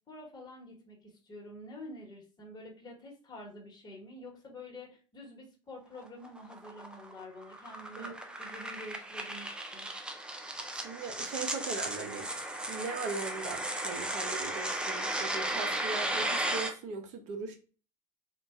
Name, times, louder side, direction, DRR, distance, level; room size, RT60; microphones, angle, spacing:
voice 1, 0.1-9.9, left 1 dB, 25° left, 1.3 m, -48 dB
sound 1, 6.0-16.7, right 1 dB, 5° right, 0.6 m, -35 dB
voice 2, 8.0-8.3 10.7-12.3 12.7-17.6, right 4 dB, 50° right, 0.8 m, -39 dB
3.7 x 2.4 x 2.5 m
hypercardioid pair, 80°, 17 cm